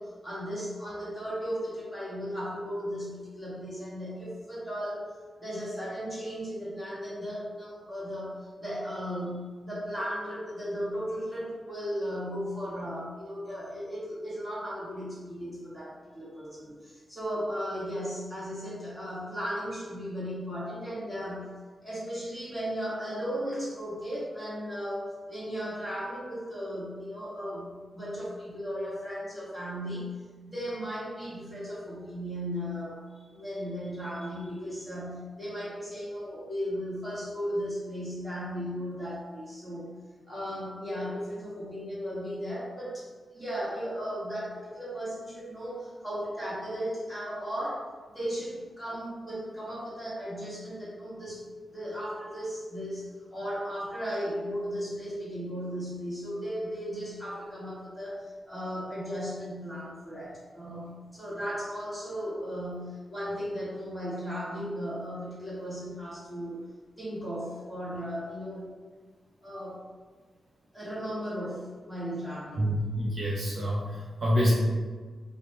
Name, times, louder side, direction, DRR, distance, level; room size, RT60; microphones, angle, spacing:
voice 1, 0.0-5.0 5.4-8.3 8.6-21.5 21.8-30.1 30.4-39.9 40.3-47.8 48.1-51.4 51.7-53.0 53.3-66.6 67.0-68.7 69.4-69.8 70.7-72.8, equal, 5° right, -10 dB, 1.4 m, -36 dB
voice 2, 72.6-74.5, equal, 50° right, -6 dB, 0.7 m, -27 dB
4.9 x 2.1 x 3.2 m, 1.4 s
wide cardioid pair, 165°, 0 cm